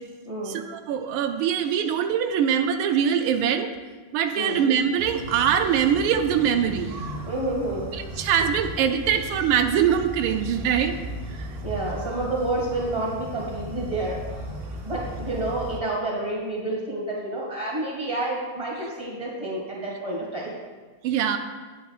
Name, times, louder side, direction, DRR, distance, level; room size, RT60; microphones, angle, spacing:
voice 1, 0.5-3.7 4.1-6.9 8.2-11.0 21.0-21.4, right 8 dB, 90° right, 7 dB, 1.4 m, -23 dB
sound 1, 5.0-15.8, right 1 dB, 60° right, 0.6 m, -36 dB
voice 2, 7.2-7.9 11.4-14.2 14.8-20.5, right 2 dB, 15° right, -3 dB, 1.8 m, -29 dB
10.0 x 8.4 x 2.4 m, 1.4 s
omnidirectional pair, 2.2 m